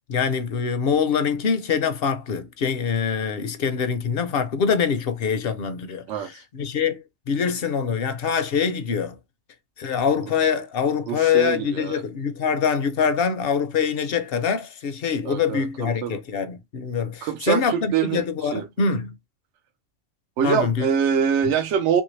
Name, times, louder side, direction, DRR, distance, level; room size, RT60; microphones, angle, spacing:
voice 1, 0.1-9.2 9.8-19.2 20.4-20.9, left 6 dB, 60° left, 0.8 m, -24 dB
voice 2, 6.1-6.4 10.2-10.3 11.1-12.0 15.2-16.2 17.2-18.2 18.5-18.7 20.4-22.0, right 7 dB, 80° right, 0.9 m, -24 dB
3.1 x 2.6 x 3.1 m
omnidirectional pair, 1.2 m